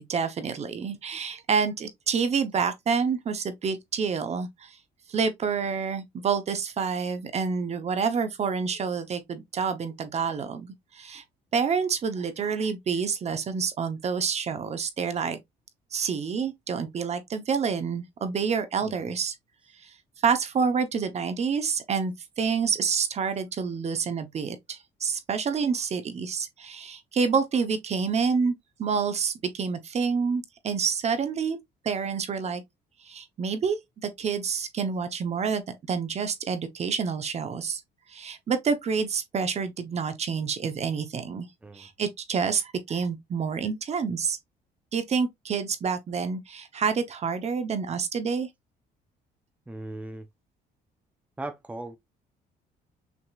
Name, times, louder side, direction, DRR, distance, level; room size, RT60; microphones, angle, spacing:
voice 1, 0.0-4.8 5.1-11.2 11.5-15.4 15.9-19.3 19.8-19.9 20.2-31.6 31.8-32.6 33.0-37.8 38.1-41.5 41.7-44.4 44.9-48.5, right 6 dB, 40° right, 0.9 m, -28 dB
voice 2, 18.8-19.1 41.6-41.9 49.7-50.3 51.4-52.0, right 2 dB, 10° right, 0.6 m, -38 dB
6.1 x 2.9 x 2.4 m
cardioid pair, 110°, 17 cm